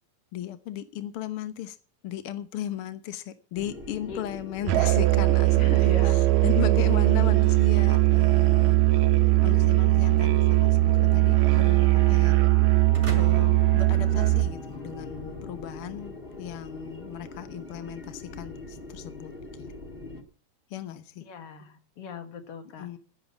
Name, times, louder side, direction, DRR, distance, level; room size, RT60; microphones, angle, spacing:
voice 1, 0.3-1.8 2.0-8.8 9.4-12.4 13.1-19.7 20.7-21.2 22.8-23.0, left 11 dB, 80° left, 11 dB, 1.2 m, -36 dB
sound 1, 3.5-20.2, left 2 dB, 25° left, 1.2 m, -41 dB
Musical instrument, 4.7-14.5, right 19 dB, 75° right, 1.8 m, -20 dB
voice 2, 5.6-6.4 21.3-22.9, left 6 dB, 50° left, 8 dB, 2.3 m, -39 dB
sound 2, 12.9-14.9, right 3 dB, 25° right, 3.5 m, -39 dB
12.0 x 10.5 x 7.1 m, 0.40 s
omnidirectional pair, 3.9 m